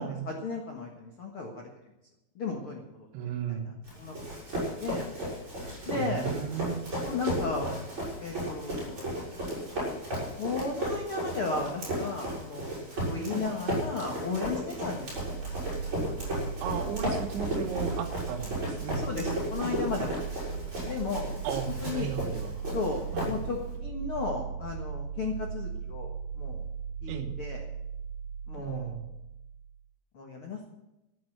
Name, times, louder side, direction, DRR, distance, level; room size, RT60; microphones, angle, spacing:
voice 1, 0.0-1.7 2.3-3.1 3.9-4.1 4.8-5.0 5.8-6.3 7.0-7.8 8.2-9.3 10.4-12.8 13.0-15.1 18.9-20.2 20.8-21.3 21.8-22.1 22.7-26.1 26.4-26.6 27.0-27.6 28.5-28.9 30.1-30.6, left 4 dB, 75° left, 0 dB, 1.2 m, -34 dB
voice 2, 3.1-3.7 5.9-6.8 13.3-13.5 16.6-19.0 21.4-22.6 23.1-23.4 27.1-27.3 28.6-29.1, right 8 dB, 80° right, 5 dB, 3.7 m, -35 dB
Run, 3.8-23.7, right 1 dB, 25° right, 6.3 m, -34 dB
sound 1, 15.0-29.8, right 6 dB, 45° right, 4.8 m, -38 dB
14.0 x 8.6 x 8.0 m, 0.92 s
omnidirectional pair, 5.3 m